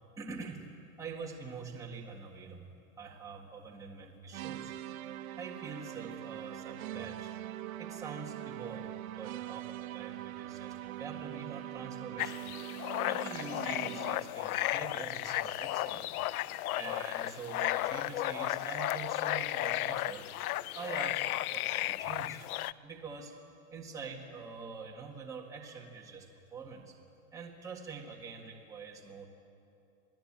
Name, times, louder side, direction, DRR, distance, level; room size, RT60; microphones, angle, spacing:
voice 1, 0.2-0.7 1.0-4.7 5.4-7.3 7.8-12.5 13.1-16.1 16.7-20.3 20.7-22.5 22.8-23.3 23.7-26.9 27.3-29.2, right 5 dB, 5° right, -2 dB, 1.8 m, -45 dB
sound 1, 4.3-14.4, right 14 dB, 70° right, 0.9 m, -42 dB
sound 2, 12.2-22.7, left 15 dB, 75° left, 0.6 m, -34 dB
27.0 x 17.5 x 8.8 m, 2.7 s
supercardioid pair, 175°, 43 cm